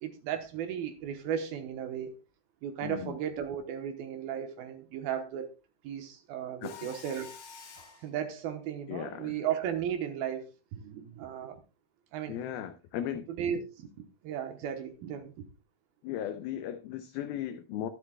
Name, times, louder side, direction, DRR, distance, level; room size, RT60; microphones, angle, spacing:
voice 1, 0.0-2.2 2.6-5.5 5.8-7.4 8.0-11.6 12.1-12.4 13.3-13.9 14.2-15.5, right 9 dB, 75° right, 2.4 m, -35 dB
voice 2, 2.8-3.2 6.6-6.9 8.9-9.3 12.3-13.3 16.0-17.9, left 10 dB, 90° left, 2.1 m, -36 dB
Mechanisms, 6.6-8.1, left 6 dB, 60° left, 2.9 m, -48 dB
22.5 x 7.9 x 2.2 m
omnidirectional pair, 5.1 m